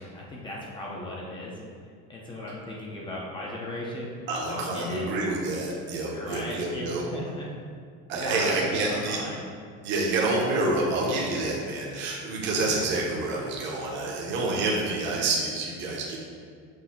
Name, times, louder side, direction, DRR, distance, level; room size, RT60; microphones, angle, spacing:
voice 1, 0.0-1.6 2.1-5.1 6.1-7.5 8.1-9.4 12.4-12.8, left 1 dB, 15° left, -4 dB, 0.6 m, -37 dB
voice 2, 4.3-7.0 8.1-9.2 9.8-16.2, right 2 dB, 40° right, -3 dB, 0.9 m, -28 dB
6.4 x 2.7 x 5.6 m, 2.1 s
cardioid pair, 180°, 30 cm